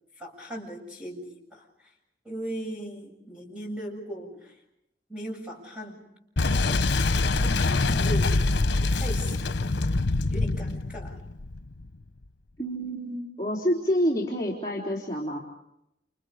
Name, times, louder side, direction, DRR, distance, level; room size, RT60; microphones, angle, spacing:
voice 1, 0.2-1.6 2.2-4.6 5.1-6.0 6.7-6.8 7.3-8.4 8.8-9.8 10.3-11.2, equal, 5° right, 0 dB, 7.6 m, -38 dB
Boom, 6.4-11.9, left 3 dB, 85° left, 0.9 m, -25 dB
voice 2, 12.6-15.4, equal, 20° left, -5 dB, 3.7 m, -28 dB
29.5 x 29.5 x 5.0 m, 0.82 s
head